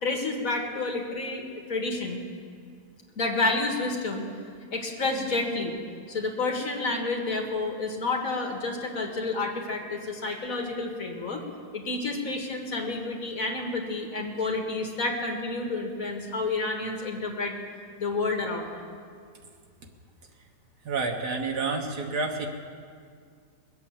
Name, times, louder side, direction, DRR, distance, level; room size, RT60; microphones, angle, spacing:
voice 1, 0.0-1.4 1.7-2.2 3.2-4.3 4.7-5.8 6.1-11.4 11.7-17.6 18.0-18.9, left 3 dB, 55° left, 1 dB, 2.1 m, -29 dB
voice 2, 20.8-22.5, right 3 dB, 80° right, 1 dB, 1.8 m, -29 dB
21.5 x 8.4 x 7.2 m, 2.1 s
omnidirectional pair, 1.7 m